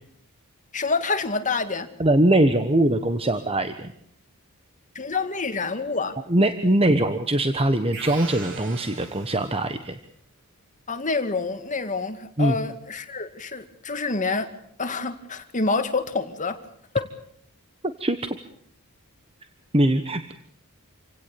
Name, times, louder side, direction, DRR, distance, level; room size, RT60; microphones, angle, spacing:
voice 1, 0.7-1.9 5.0-6.2 10.9-14.5 14.8-16.6 16.9-17.1, left 4 dB, 35° left, 2.1 m, -27 dB
voice 2, 2.0-3.9 6.3-10.0 12.4-12.5 18.0-18.4 19.7-20.3, right 1 dB, 25° right, 1.2 m, -21 dB
sound 1, 7.9-9.8, right 4 dB, 60° right, 5.2 m, -40 dB
28.0 x 17.0 x 8.5 m
head